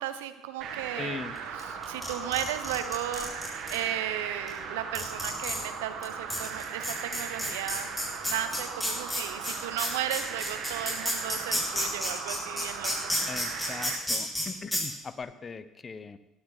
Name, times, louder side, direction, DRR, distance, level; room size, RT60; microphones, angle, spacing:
voice 1, 0.0-3.3 3.7-7.9 8.3-13.1, right 11 dB, 80° right, 11 dB, 0.9 m, -35 dB
sound 1, 0.6-14.0, right 6 dB, 65° right, 1.7 m, -38 dB
voice 2, 1.0-1.3 13.3-16.2, left 5 dB, 35° left, 14 dB, 0.9 m, -39 dB
sound 2, 1.6-3.8 4.5-4.6 4.9-5.6 6.0-6.1 6.3-14.4 14.7-14.8, left 1 dB, 10° left, 6.2 m, -30 dB
17.5 x 12.0 x 4.1 m, 0.97 s
hypercardioid pair, 60°, 0 cm